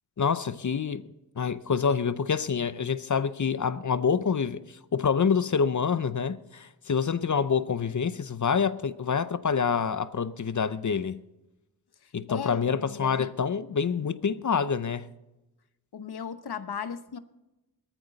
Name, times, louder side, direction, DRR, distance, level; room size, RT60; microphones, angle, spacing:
voice 1, 0.2-1.0 1.4-4.6 4.9-11.2 12.1-15.1, left 6 dB, 50° left, 0.7 m, -27 dB
voice 2, 12.0-13.3 15.9-17.2, left 7 dB, 75° left, 0.9 m, -37 dB
20.0 x 14.0 x 4.0 m
wide cardioid pair, 80°, 39 cm